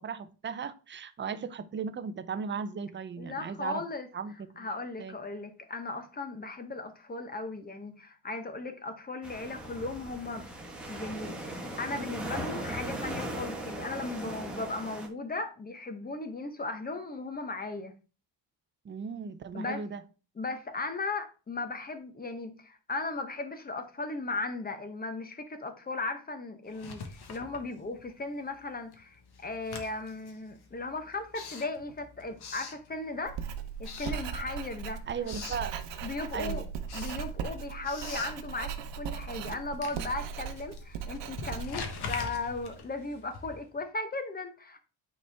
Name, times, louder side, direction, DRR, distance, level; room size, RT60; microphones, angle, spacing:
voice 1, 0.0-3.8 4.1-4.7 5.0-5.1 18.8-20.0 35.1-35.7 36.3-36.6, right 6 dB, 25° right, 0.5 m, -36 dB
voice 2, 3.2-4.1 4.6-10.5 10.9-17.9 19.5-19.8 20.4-33.4 33.8-35.0 36.0-36.6 36.9-44.8, left 3 dB, 20° left, 0.9 m, -37 dB
sound 1, 9.2-15.1, right 1 dB, ahead, 1.3 m, -38 dB
Writing, 26.7-28.3 28.6-33.4 33.8-34.8 35.0-35.7 36.1-43.8, left 5 dB, 60° left, 1.4 m, -44 dB
Writing 2, 33.3-42.7, right 7 dB, 75° right, 0.9 m, -38 dB
8.9 x 4.3 x 3.4 m
cardioid pair, 150°, 43 cm